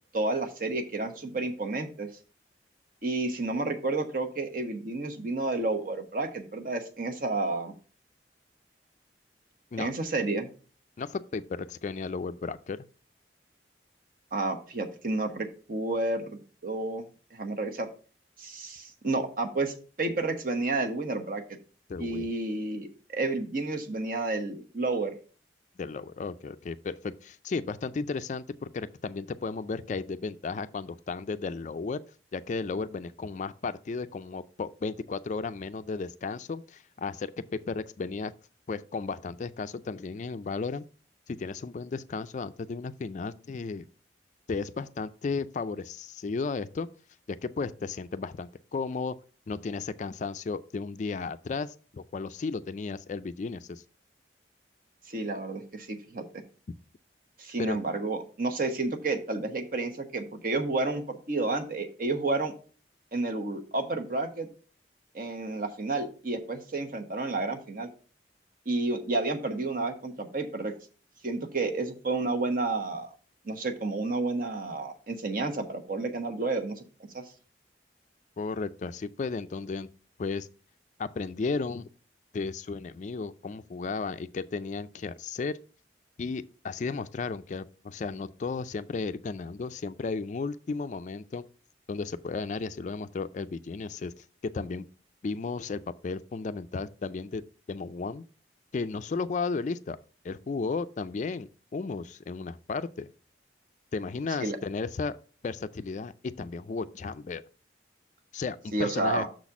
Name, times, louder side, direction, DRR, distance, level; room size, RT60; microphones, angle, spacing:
voice 1, 0.1-2.1 3.0-7.7 9.8-10.5 14.3-17.9 18.4-21.4 22.0-25.1 55.1-56.4 57.4-62.5 63.1-64.5 65.1-67.9 68.6-70.7 71.2-73.1 73.4-76.8 77.1-77.2 104.4-104.6 108.7-109.3, right 2 dB, 50° right, 1.1 m, -31 dB
voice 2, 11.0-12.9 21.9-22.3 25.8-32.0 32.3-37.3 37.7-38.3 38.7-40.8 41.3-43.9 44.5-46.9 47.3-49.2 49.5-53.8 57.6-57.8 78.4-79.9 80.2-80.5 81.0-81.9 82.3-85.6 86.2-91.5 91.9-94.9 95.2-97.4 97.7-98.2 98.7-100.0 100.2-103.1 103.9-105.2 105.4-107.4 108.3-109.2, left 4 dB, 40° left, 0.3 m, -34 dB
6.4 x 4.1 x 5.9 m
head